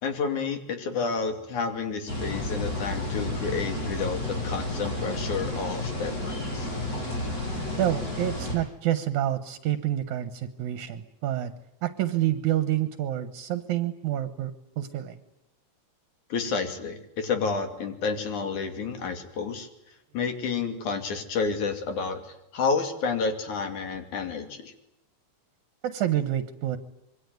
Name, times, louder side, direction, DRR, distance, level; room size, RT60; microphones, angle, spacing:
voice 1, 0.0-6.7 16.3-19.7 20.1-22.2 22.5-24.7, left 5 dB, 70° left, 7 dB, 4.1 m, -30 dB
sound 1, 2.1-8.6, left 1 dB, 25° left, 7.8 m, -31 dB
voice 2, 7.8-11.5 11.8-15.2 25.8-26.8, right 12 dB, 75° right, 11 dB, 2.5 m, -28 dB
26.5 x 23.0 x 9.4 m, 0.84 s
omnidirectional pair, 3.5 m